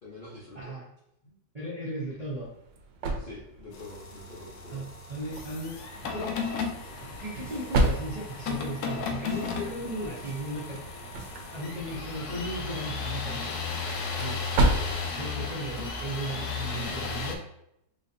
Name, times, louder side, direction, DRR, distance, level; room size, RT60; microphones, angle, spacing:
voice 1, 0.0-0.7 1.2-1.4 3.1-4.9, left 2 dB, 50° left, -6 dB, 0.6 m, -46 dB
voice 2, 1.5-2.5 4.7-4.8 5.1-5.8 6.1-6.3 7.2-10.8 11.5-13.5 14.2-17.4, right 1 dB, 35° right, -8 dB, 0.7 m, -36 dB
sound 1, 2.1-16.6, right 2 dB, 90° right, 1.3 m, -34 dB
sound 2, 3.7-17.4, left 5 dB, 75° left, 1.0 m, -35 dB
sound 3, 6.8-11.8, right 3 dB, 65° right, 0.4 m, -49 dB
4.3 x 2.7 x 2.6 m, 0.78 s
omnidirectional pair, 1.9 m